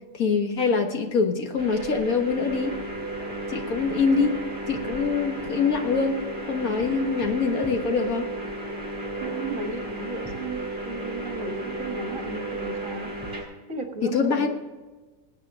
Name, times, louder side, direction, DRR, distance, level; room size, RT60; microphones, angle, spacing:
voice 1, 0.1-2.8 3.5-4.3 4.7-6.2 6.5-8.3 14.0-14.5, left 5 dB, 75° left, 4 dB, 1.8 m, -24 dB
sound 1, 1.6-13.4, right 2 dB, 20° right, 5.1 m, -33 dB
voice 2, 9.2-13.1 13.7-14.5, right 3 dB, 65° right, 3 dB, 2.2 m, -35 dB
20.5 x 8.9 x 3.7 m, 1.3 s
omnidirectional pair, 1.5 m